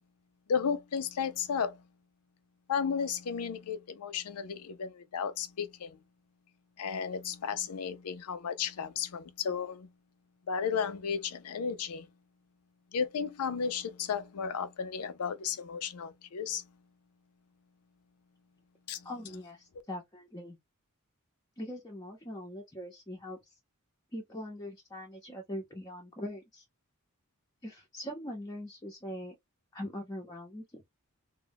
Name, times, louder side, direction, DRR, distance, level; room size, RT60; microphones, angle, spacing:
voice 1, 0.5-1.8 2.7-6.0 6.8-9.9 10.5-12.1 12.9-16.6 18.9-19.1, left 6 dB, 85° left, 0.5 m, -34 dB
voice 2, 19.0-20.6 21.6-23.5 24.1-26.6 27.6-29.4 29.7-30.8, left 1 dB, 20° left, 0.6 m, -42 dB
2.2 x 2.1 x 3.3 m
head